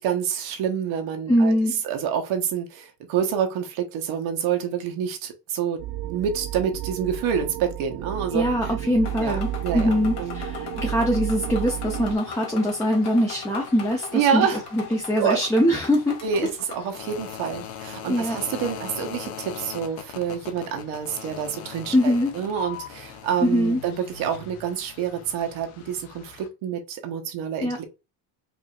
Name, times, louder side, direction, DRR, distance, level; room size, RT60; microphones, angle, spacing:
voice 1, 0.0-1.5 1.8-8.7 9.2-10.4 14.1-14.6 15.2-15.4 16.2-27.8, right 8 dB, 75° right, 1.2 m, -27 dB
voice 2, 1.3-1.8 8.3-14.5 14.7-16.2 18.1-18.4 21.9-22.3 23.4-23.8 27.6-27.8, equal, 5° left, 0.7 m, -22 dB
sound 1, 5.8-12.2, right 14 dB, 55° right, 0.6 m, -32 dB
sound 2, 9.0-16.9, left 6 dB, 55° left, 1.6 m, -39 dB
sound 3, 11.7-26.5, left 8 dB, 80° left, 1.0 m, -41 dB
5.0 x 2.7 x 2.5 m
cardioid pair, 130°, 48 cm